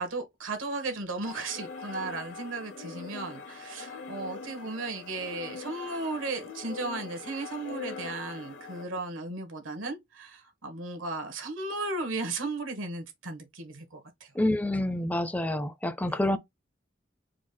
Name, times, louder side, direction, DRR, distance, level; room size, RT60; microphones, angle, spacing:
voice 1, 0.0-14.3 16.1-16.2, right 3 dB, 90° right, 1.6 m, -35 dB
sound 1, 1.2-8.8, left 4 dB, 65° left, 0.8 m, -42 dB
voice 2, 14.3-16.4, left 1 dB, 10° left, 0.4 m, -27 dB
4.7 x 2.3 x 4.2 m
head